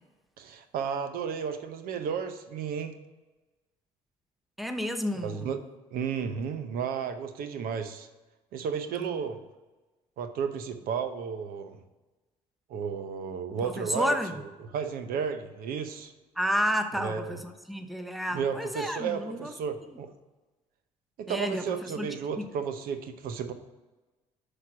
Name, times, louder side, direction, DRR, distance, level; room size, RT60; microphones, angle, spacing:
voice 1, 0.4-2.9 5.2-5.6 5.9-8.1 8.5-9.4 10.2-11.8 12.7-14.1 14.7-16.1 17.0-17.3 18.3-20.1 21.2-23.5, right 6 dB, 70° right, 9 dB, 0.7 m, -33 dB
voice 2, 4.6-5.6 8.9-9.2 13.6-14.3 16.4-19.5 21.3-22.1, equal, ahead, 7 dB, 0.8 m, -31 dB
5.8 x 5.0 x 6.0 m, 1.2 s
supercardioid pair, 65°, 16 cm